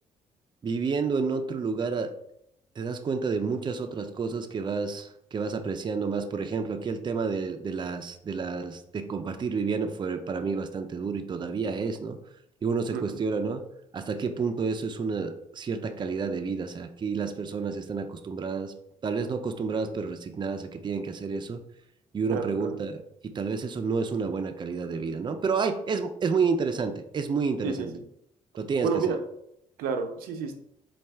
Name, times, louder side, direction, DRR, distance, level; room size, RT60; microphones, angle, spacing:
voice 1, 0.6-2.1 2.8-12.2 12.6-13.6 13.9-18.7 19.0-21.6 22.1-23.0 23.2-27.9 28.6-29.2, right 5 dB, 30° right, 7 dB, 0.4 m, -30 dB
voice 2, 22.3-22.8 27.6-28.0 28.8-29.2 29.8-30.5, right 6 dB, 90° right, 5 dB, 0.5 m, -30 dB
4.1 x 2.3 x 3.4 m, 0.75 s
cardioid pair, 80°, 15 cm